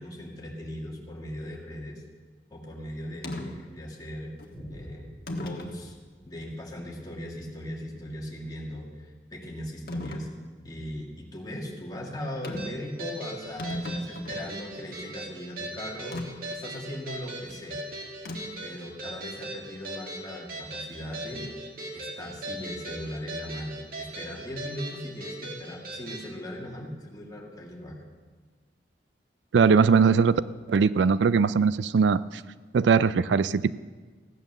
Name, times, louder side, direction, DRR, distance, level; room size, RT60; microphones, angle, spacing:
voice 1, 0.0-2.0 2.5-4.3 4.7-6.0 6.3-10.3 10.6-17.8 18.6-21.5 21.9-28.0, left 1 dB, 20° left, -2 dB, 2.2 m, -39 dB
sound 1, 3.2-3.5 4.4-4.5 5.3-5.8 6.4-6.5 9.9-10.3 12.4-12.8 13.1-13.2 13.4-14.5 16.1-16.3 18.2-18.6, left 1 dB, 55° left, 1.4 m, -35 dB
Boom, 4.5-11.4 12.0-12.1, equal, 10° right, 2.8 m, -52 dB
sound 2, 12.6-26.3, right 1 dB, 55° right, 2.2 m, -39 dB
voice 2, 29.5-30.4 30.7-32.2 32.7-33.7, right 5 dB, 85° right, 17 dB, 0.4 m, -20 dB
15.5 x 9.0 x 6.7 m, 1.4 s
head